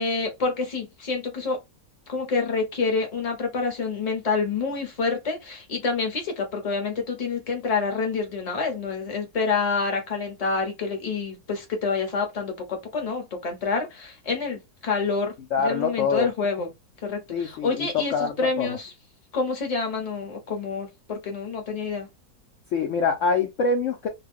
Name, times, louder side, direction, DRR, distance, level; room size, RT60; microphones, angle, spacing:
voice 1, 0.0-1.6 2.1-16.7 17.0-18.9 19.3-22.1, left 4 dB, 30° left, 0.9 m, -27 dB
voice 2, 15.5-16.3 17.3-18.8 22.7-24.1, left 5 dB, 65° left, 0.8 m, -25 dB
2.5 x 2.2 x 3.4 m
omnidirectional pair, 1.6 m